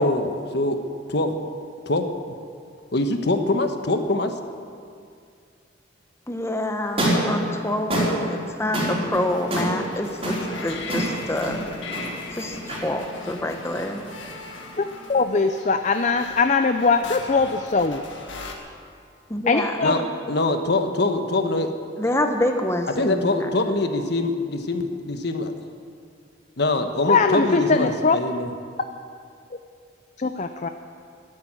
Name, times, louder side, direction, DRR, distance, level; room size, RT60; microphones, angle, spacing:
voice 1, 0.0-0.8 1.1-1.3 1.9-2.0 2.9-4.4 19.8-20.0 20.3-21.7 23.0-25.5 26.6-28.5, left 2 dB, 60° left, 6 dB, 1.2 m, -23 dB
voice 2, 6.3-11.7 12.3-14.1 19.3-20.1 22.0-23.5, left 1 dB, 15° left, 5 dB, 0.9 m, -27 dB
sound 1, 6.8-15.1, right 1 dB, 30° right, 4.1 m, -28 dB
sound 2, 9.1-18.5, left 3 dB, 85° left, 1.8 m, -39 dB
voice 3, 15.1-18.0 19.5-20.0 27.1-28.2 30.2-30.7, left 4 dB, 40° left, 7 dB, 0.5 m, -21 dB
12.5 x 11.5 x 8.9 m, 2.2 s
head